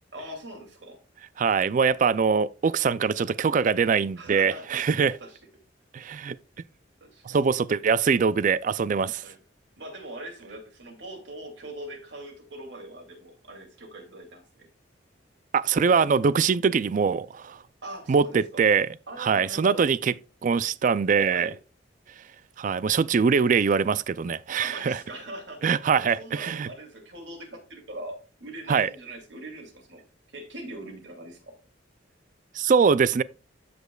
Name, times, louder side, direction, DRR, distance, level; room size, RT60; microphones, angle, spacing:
voice 1, 0.1-1.0 4.2-5.4 7.0-7.2 7.7-7.8 9.2-9.4 9.8-14.7 17.8-18.6 19.1-19.9 21.3-21.6 24.6-31.6, right 1 dB, 70° right, 2.6 m, -42 dB
voice 2, 1.4-5.1 5.9-6.4 7.3-9.2 15.5-17.6 18.1-18.9 19.2-20.1 20.4-21.5 22.6-25.0 25.6-26.7 28.7-28.9 32.5-33.2, right 5 dB, 45° right, 0.3 m, -23 dB
14.0 x 5.2 x 2.3 m
head